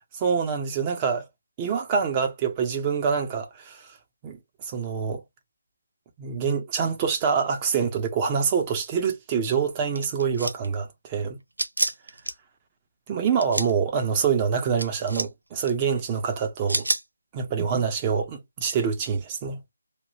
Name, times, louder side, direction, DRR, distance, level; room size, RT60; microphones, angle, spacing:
voice 1, 0.1-1.3 1.6-4.0 4.2-5.2 6.2-11.4 13.1-16.9 17.3-19.6, right 6 dB, 20° right, 0.6 m, -26 dB
sound 1, 10.0-10.7 11.6-12.3 13.3-13.7 14.8-15.3 15.6-15.7 16.7-17.0, right 2 dB, 85° right, 0.7 m, -28 dB
2.9 x 2.3 x 2.8 m
figure-of-eight pair, 160°, 0 cm